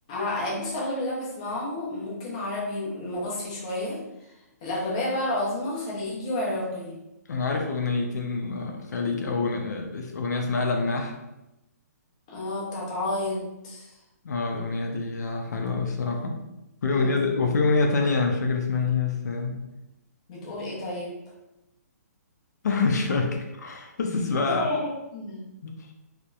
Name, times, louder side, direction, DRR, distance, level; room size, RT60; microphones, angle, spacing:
voice 1, 0.1-4.0 4.6-7.0 12.3-13.9 16.9-17.5 20.3-21.1 24.5-25.4, left 1 dB, 25° left, -5 dB, 0.6 m, -30 dB
voice 2, 7.3-11.1 14.2-16.4 16.8-19.6 22.6-24.7 25.6-25.9, left 4 dB, 75° left, 2 dB, 0.4 m, -26 dB
2.8 x 2.0 x 2.3 m, 0.93 s
hypercardioid pair, 175°, 9 cm